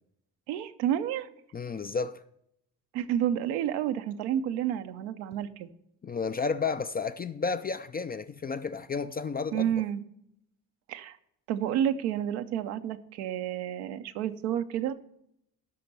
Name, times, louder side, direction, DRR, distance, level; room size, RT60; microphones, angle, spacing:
voice 1, 0.5-1.3 2.9-5.7 9.5-10.0 10.9-11.2 11.5-14.9, right 10 dB, 80° right, 0.8 m, -30 dB
voice 2, 1.5-2.2 6.0-9.7, left 5 dB, 20° left, 0.3 m, -32 dB
13.5 x 5.9 x 5.3 m
hypercardioid pair, 45°, 48 cm